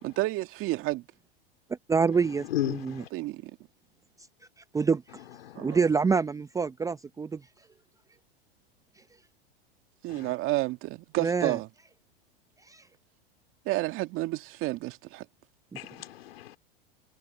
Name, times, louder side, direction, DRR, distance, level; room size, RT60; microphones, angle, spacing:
voice 1, 0.0-1.0 3.1-3.5 5.5-5.8 10.0-11.7 13.7-15.3, right 19 dB, 45° right, 2.1 m, -30 dB
voice 2, 1.9-3.0 4.7-5.0 5.6-7.4 11.2-11.6 12.7-12.8, right 5 dB, 10° right, 0.6 m, -26 dB
voice 3, 2.5-3.1 5.4-5.7 10.1-10.3 15.7-16.6, left 13 dB, 75° left, 3.1 m, -34 dB
hypercardioid pair, 105°, 30 cm